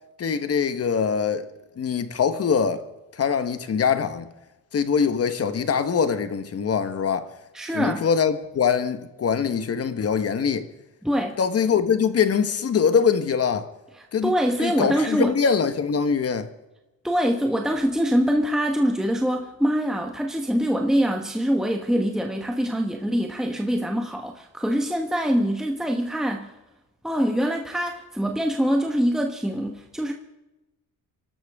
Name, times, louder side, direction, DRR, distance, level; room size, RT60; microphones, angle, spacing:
voice 1, 0.2-1.4 1.8-2.8 3.2-4.3 4.7-7.3 7.7-10.7 11.4-13.7 14.1-14.3 14.6-16.5, left 6 dB, 45° left, 1.3 m, -23 dB
voice 2, 7.5-8.0 11.0-11.4 14.0-15.3 17.0-26.5 27.0-30.1, equal, ahead, 1.2 m, -24 dB
26.0 x 12.5 x 3.6 m
cardioid pair, 120°, 34 cm